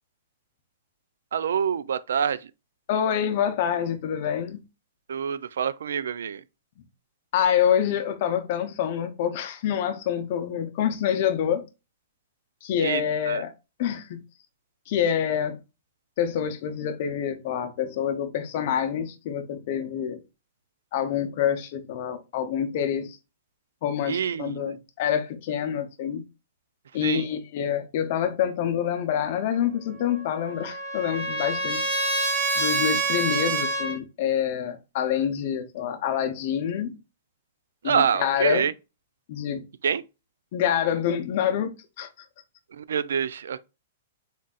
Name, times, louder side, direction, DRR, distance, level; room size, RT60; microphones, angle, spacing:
voice 1, 1.3-2.4 5.1-6.4 12.8-13.4 24.1-24.7 27.0-27.2 37.8-38.7 39.8-40.0 42.7-43.6, right 7 dB, 80° right, 0.3 m, -26 dB
voice 2, 2.9-4.6 7.3-11.6 12.6-13.5 13.8-14.2 14.9-15.6 16.2-20.2 20.9-23.2 23.8-26.2 26.9-31.9 32.6-37.0 37.8-38.7 39.3-39.6 40.5-41.7 42.0-42.1, left 9 dB, 40° left, 0.6 m, -26 dB
Trumpet, 30.1-34.0, right 2 dB, 50° right, 1.6 m, -27 dB
3.9 x 3.8 x 2.4 m
hypercardioid pair, 175°, 0 cm